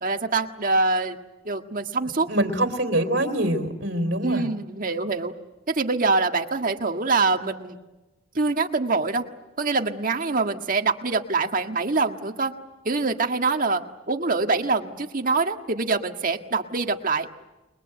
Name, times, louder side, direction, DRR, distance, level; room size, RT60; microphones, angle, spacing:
voice 1, 0.0-1.2 1.4-2.3 4.2-5.3 5.7-7.8 8.3-9.2 9.6-12.5 12.8-13.8 14.1-17.3, right 3 dB, 45° right, 5 dB, 1.7 m, -24 dB
voice 2, 2.3-4.5, right 1 dB, 65° right, 4 dB, 3.3 m, -24 dB
30.0 x 22.0 x 7.9 m, 1.1 s
head